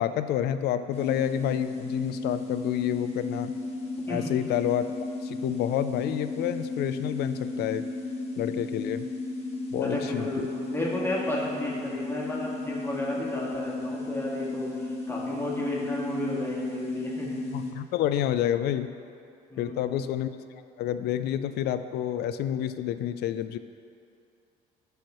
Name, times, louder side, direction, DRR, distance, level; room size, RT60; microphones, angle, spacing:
voice 1, 0.0-3.5 4.1-4.9 5.2-7.9 8.4-9.1 9.7-10.5 17.5-18.9 19.6-20.3 20.8-23.6, left 11 dB, 75° left, 11 dB, 0.4 m, -29 dB
sound 1, 0.9-17.7, left 2 dB, 40° left, 1.3 m, -34 dB
voice 2, 9.8-17.4 19.5-20.0, left 1 dB, 15° left, -5 dB, 1.7 m, -33 dB
11.5 x 4.7 x 3.0 m, 2.5 s
cardioid pair, 110°, 17 cm